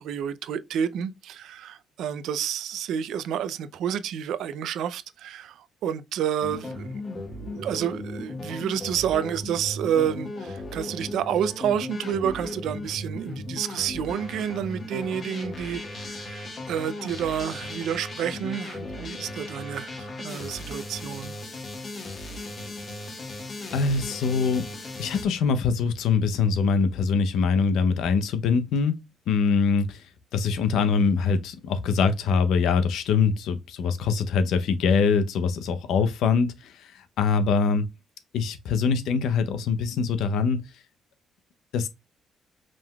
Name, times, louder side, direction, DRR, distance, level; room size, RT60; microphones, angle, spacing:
voice 1, 0.0-6.9 7.3-21.4, right 9 dB, 80° right, 0.4 m, -29 dB
sound 1, 6.4-25.2, left 1 dB, 40° left, 1.4 m, -37 dB
voice 2, 23.7-24.6 25.0-29.0 29.3-30.0 30.3-36.7 37.2-37.8 38.3-40.6 41.7-41.9, left 5 dB, 80° left, 0.6 m, -23 dB
5.0 x 3.7 x 2.3 m
cardioid pair, 90°, 0 cm